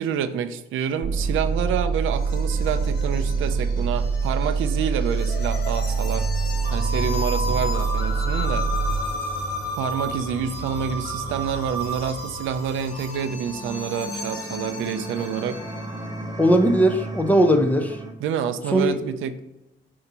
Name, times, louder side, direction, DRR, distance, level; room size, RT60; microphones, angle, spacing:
voice 1, 0.0-6.3 6.7-8.7 9.7-15.6 18.2-19.4, right 8 dB, 85° right, 11 dB, 0.5 m, -28 dB
sound 1, 1.0-9.0, right 5 dB, 45° right, 0.7 m, -25 dB
sound 2, 1.1-18.1, equal, 20° right, 1.0 m, -36 dB
sound 3, 1.4-16.0, left 2 dB, 55° left, 1.3 m, -34 dB
voice 2, 16.4-18.0 18.7-19.2, right 1 dB, 10° left, 5 dB, 0.8 m, -19 dB
6.8 x 2.8 x 5.4 m, 0.88 s
cardioid pair, 90°, 20 cm